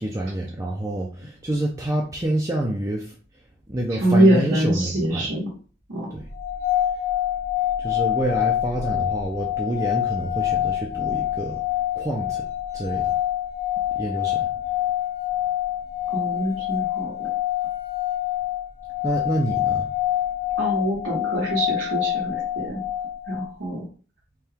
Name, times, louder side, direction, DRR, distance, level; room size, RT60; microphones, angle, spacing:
voice 1, 0.0-3.2 3.7-5.3 6.1-6.3 7.8-11.6 12.0-12.5 12.7-13.1 14.0-14.5 19.0-19.9, right 1 dB, 15° right, 0.5 m, -27 dB
voice 2, 3.9-5.5 5.9-6.1 16.1-17.1 20.6-22.8 23.3-23.9, right 1 dB, 90° right, 1.3 m, -23 dB
sound 1, 6.3-23.5, left 13 dB, 65° left, 1.6 m, -26 dB
4.5 x 2.3 x 3.4 m
head